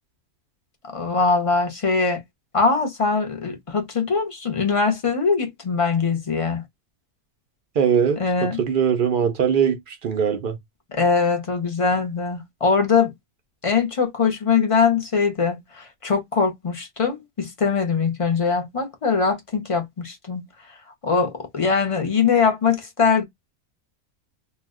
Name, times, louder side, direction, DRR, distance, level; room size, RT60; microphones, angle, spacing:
voice 1, 0.9-2.2 2.5-6.6 8.2-8.6 10.9-13.1 13.6-20.5 21.0-23.2, left 5 dB, 35° left, 0.5 m, -22 dB
voice 2, 7.8-10.6, right 7 dB, 60° right, 0.5 m, -21 dB
2.4 x 2.1 x 3.5 m
omnidirectional pair, 1.5 m